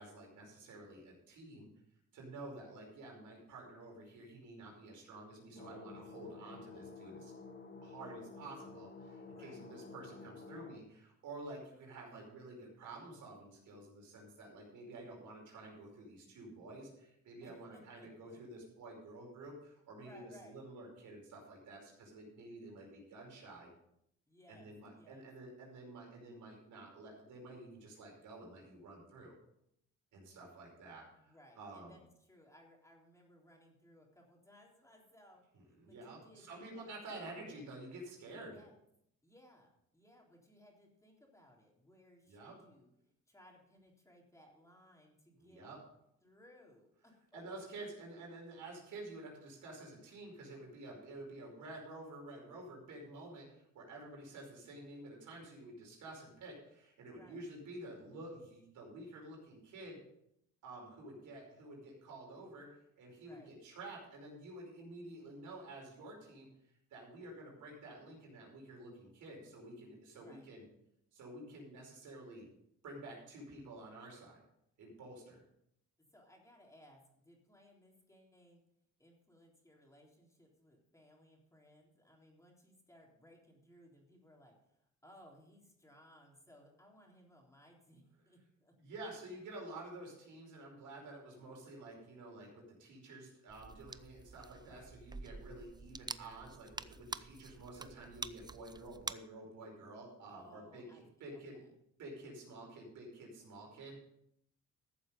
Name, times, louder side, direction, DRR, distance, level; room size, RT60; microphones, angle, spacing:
voice 1, 0.0-1.7 2.1-7.3 7.8-23.7 24.5-29.3 30.1-32.0 35.8-38.6 42.3-42.6 45.4-45.8 47.3-60.0 60.6-62.7 63.0-66.5 66.9-70.6 71.1-72.5 72.8-74.4 74.8-75.4 88.8-101.6 102.0-104.0, right 2 dB, 75° right, -1 dB, 5.2 m, -50 dB
sound 1, 5.6-10.8, left 3 dB, 40° left, 1.4 m, -51 dB
voice 2, 9.3-9.6 17.4-18.4 20.0-20.6 24.3-25.3 31.2-37.2 38.5-38.8 39.2-42.9 43.3-45.6 46.2-47.4 57.1-57.5 62.4-62.5 63.2-63.5 70.1-70.5 76.0-78.6 79.0-88.8 94.5-94.9 100.3-101.1 101.3-101.7, equal, 10° left, -1 dB, 3.5 m, -62 dB
sound 2, 93.5-99.1, right 3 dB, 15° right, 0.4 m, -47 dB
13.5 x 7.6 x 5.3 m, 0.76 s
cardioid pair, 90°, 30 cm